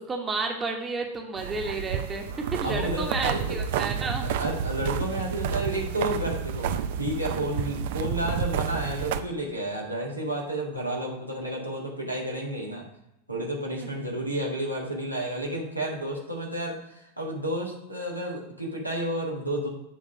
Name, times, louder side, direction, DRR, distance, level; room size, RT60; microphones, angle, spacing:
voice 1, 0.0-4.3, right 3 dB, 15° right, 2 dB, 1.1 m, -31 dB
sound 1, 1.4-9.2, right 7 dB, 50° right, 0.4 m, -30 dB
voice 2, 2.6-3.6 4.2-12.8 13.3-19.7, right 1 dB, 90° right, -2 dB, 1.4 m, -31 dB
7.5 x 3.5 x 5.8 m, 0.86 s
figure-of-eight pair, 90°, 0 cm